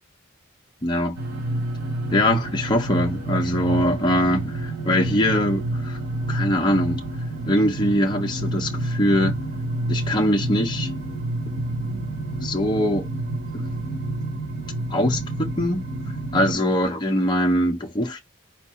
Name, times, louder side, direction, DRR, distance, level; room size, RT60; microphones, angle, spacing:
voice 1, 0.8-1.2 2.1-6.0 6.3-7.0 7.5-9.4 9.9-10.9 12.4-13.1 13.5-13.6 14.9-15.9 16.3-18.2, equal, 20° left, 0.7 m, -22 dB
sound 1, 1.1-16.5, right 1 dB, 60° right, 2.7 m, -29 dB
4.6 x 2.6 x 4.1 m
head